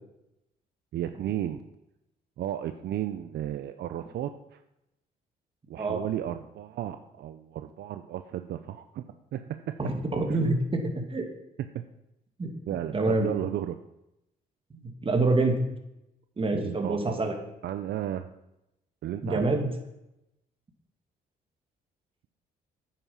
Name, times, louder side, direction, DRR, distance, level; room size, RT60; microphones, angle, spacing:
voice 1, 0.9-1.6 2.4-4.6 5.7-9.0 9.3-9.8 10.3-10.4 11.7-11.8 12.7-13.8 16.6-17.3 17.6-18.3 19.0-19.5, right 11 dB, 70° right, 9 dB, 0.6 m, -34 dB
voice 2, 9.8-10.8 11.1-11.3 12.4-12.5 12.9-13.3 14.7-15.7 16.4-17.3 19.2-19.7, right 2 dB, 30° right, 3 dB, 2.3 m, -26 dB
9.4 x 9.0 x 5.6 m, 0.88 s
cardioid pair, 85°, 18 cm